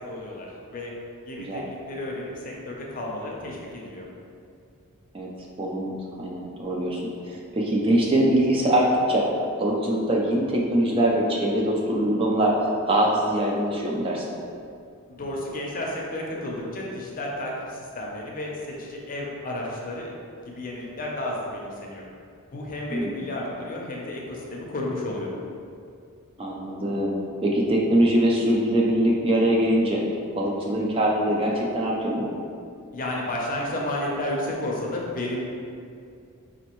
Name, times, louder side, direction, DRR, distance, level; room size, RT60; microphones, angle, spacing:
voice 1, 0.1-0.5 0.7-0.9 1.2-4.1 15.1-20.1 20.4-22.0 22.5-25.3 32.9-35.4, left 1 dB, 40° left, -2 dB, 0.6 m, -32 dB
voice 2, 5.6-9.3 9.6-12.5 12.9-14.2 22.9-23.3 26.4-27.1 27.4-30.0 30.3-32.3, right 1 dB, 25° right, -2 dB, 0.4 m, -23 dB
4.2 x 2.6 x 2.9 m, 2.4 s
head